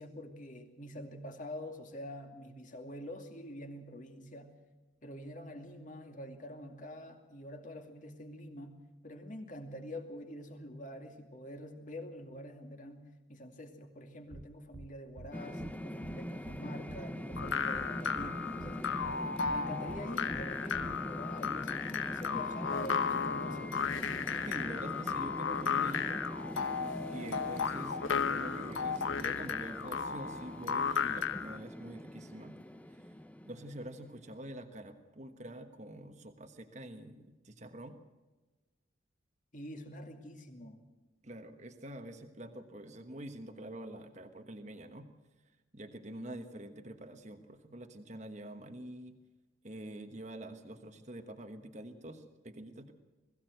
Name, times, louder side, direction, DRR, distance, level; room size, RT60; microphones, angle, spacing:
voice 1, 0.0-4.5 5.0-8.8 9.0-18.9 19.5-23.8 39.5-40.8, left 1 dB, 40° left, 4 dB, 2.4 m, -46 dB
sound 1, 14.3-14.4 14.7-14.9 15.2-15.3 15.6-15.7 16.0-16.1 16.4-16.6 16.9-17.0 17.3-17.9 18.2-18.3 18.6-18.7 19.0-19.1 19.4-19.6 19.9-20.0 20.3-20.4 20.7-21.0, right 2 dB, 60° right, 0.7 m, -47 dB
sound 2, 15.3-34.4, equal, 10° left, 0.6 m, -43 dB
sound 3, 17.4-31.6, left 6 dB, 85° left, 1.1 m, -34 dB
voice 2, 24.4-26.2 27.1-32.5 33.4-38.0 41.2-45.1 45.7-49.2 49.6-52.9, right 1 dB, 35° right, 6 dB, 1.3 m, -46 dB
21.0 x 15.5 x 7.9 m, 1.2 s
head